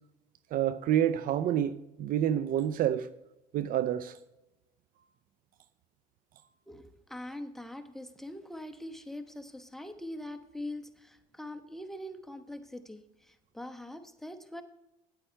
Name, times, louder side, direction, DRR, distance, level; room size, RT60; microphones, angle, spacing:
voice 1, 0.5-3.1 3.5-4.2, right 10 dB, 55° right, 0.6 m, -28 dB
voice 2, 6.7-14.6, left 1 dB, ahead, 1.1 m, -43 dB
9.3 x 8.8 x 4.5 m
supercardioid pair, 85°, 17 cm